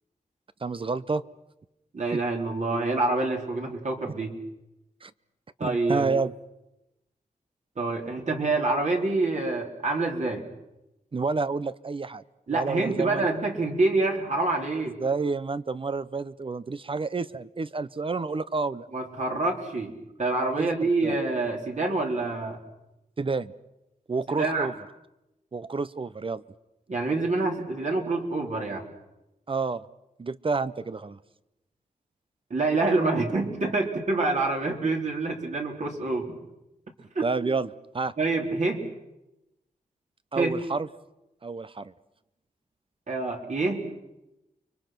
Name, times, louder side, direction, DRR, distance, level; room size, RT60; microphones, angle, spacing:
voice 1, 0.6-1.2 2.1-2.2 5.0-5.1 5.6-6.3 11.1-12.2 12.5-13.3 14.8-18.9 20.6-21.2 23.2-23.5 24.1-24.7 25.5-26.4 29.5-29.9 30.2-31.2 37.2-38.1 40.3-40.9 41.4-41.9, right 4 dB, 35° right, 15 dB, 0.8 m, -29 dB
voice 2, 1.9-4.3 5.6-6.1 7.8-10.5 12.5-15.0 18.9-19.9 20.2-22.6 24.4-24.7 26.9-28.8 32.5-36.3 37.1-37.3 38.2-38.8 40.4-40.6 43.1-43.8, right 3 dB, 55° right, 1 dB, 4.1 m, -26 dB
29.5 x 23.5 x 6.0 m, 0.95 s
wide cardioid pair, 100°, 15 cm